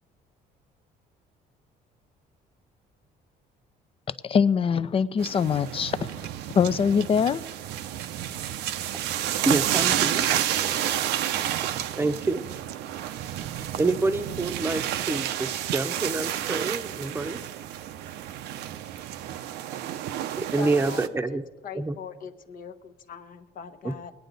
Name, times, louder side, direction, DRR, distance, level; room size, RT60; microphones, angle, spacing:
voice 1, 4.2-6.1 6.5-7.4, left 6 dB, 35° left, 0.5 m, -23 dB
sound 1, 5.2-21.1, right 11 dB, 80° right, 0.7 m, -30 dB
voice 2, 9.4-10.3 10.6-10.8 12.0-12.4 13.8-17.4 20.4-21.4 21.7-22.0 23.8-23.9, right 2 dB, 15° right, 0.8 m, -27 dB
voice 3, 20.6-21.0 21.6-24.1, left 6 dB, 55° left, 1.0 m, -41 dB
21.0 x 9.2 x 4.0 m
cardioid pair, 110°, 17 cm